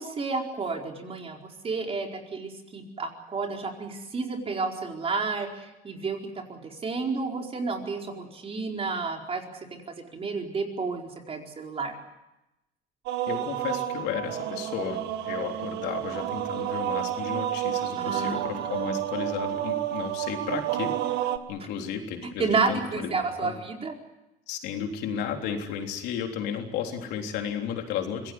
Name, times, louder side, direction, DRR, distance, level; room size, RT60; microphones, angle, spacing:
voice 1, 0.0-12.0 18.0-19.0 22.4-23.9, right 4 dB, 35° right, 2 dB, 4.6 m, -31 dB
sound 1, 13.1-21.4, right 12 dB, 90° right, 1.5 m, -30 dB
voice 2, 13.3-23.5 24.5-28.3, left 8 dB, 90° left, 3 dB, 3.6 m, -34 dB
25.0 x 17.5 x 9.5 m, 0.95 s
cardioid pair, 110°, 17 cm